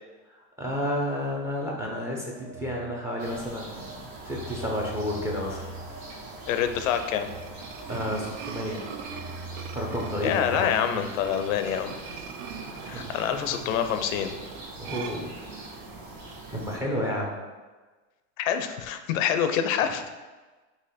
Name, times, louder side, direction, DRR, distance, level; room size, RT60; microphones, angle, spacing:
voice 1, 0.3-3.9 4.3-5.6 7.9-8.8 9.7-11.0 13.0-13.6 14.8-15.3 16.5-17.3, equal, 5° right, -2 dB, 0.5 m, -31 dB
Telephone, 2.3-11.0, right 2 dB, 50° right, 0.9 m, -43 dB
sound 1, 3.2-16.8, right 2 dB, 90° right, 1.4 m, -43 dB
voice 2, 6.5-7.3 10.2-12.0 12.9-14.4 18.4-20.0, left 9 dB, 85° left, 8 dB, 0.6 m, -26 dB
sound 2, 6.7-16.0, right 7 dB, 70° right, 0.6 m, -43 dB
4.1 x 2.9 x 4.1 m, 1.3 s
supercardioid pair, 145°, 38 cm